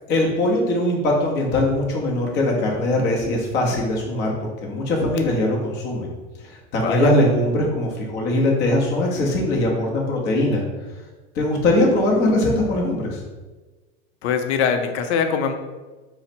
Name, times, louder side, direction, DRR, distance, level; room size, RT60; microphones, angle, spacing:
voice 1, 0.1-6.1 6.4-10.6 11.3-13.2, left 1 dB, 30° left, -2 dB, 0.7 m, -21 dB
voice 2, 6.7-7.1 14.2-15.5, left 6 dB, 75° left, 7 dB, 0.6 m, -22 dB
4.0 x 2.1 x 4.1 m, 1.2 s
supercardioid pair, 155°, 34 cm